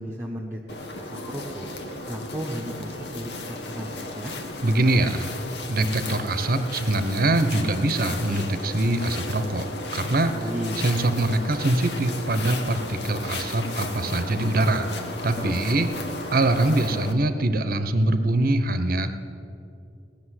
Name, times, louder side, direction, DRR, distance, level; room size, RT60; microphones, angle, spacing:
voice 1, 0.0-1.7 2.1-4.3 10.3-10.8, equal, 15° right, -3 dB, 1.1 m, -34 dB
sound 1, 0.7-17.1, left 2 dB, 75° left, 1.3 m, -34 dB
voice 2, 4.6-5.3 5.7-9.7 9.9-10.3 10.8-14.9 15.2-15.9 16.3-19.1, right 2 dB, 55° right, 10 dB, 0.9 m, -23 dB
18.0 x 6.7 x 9.8 m, 2.6 s
head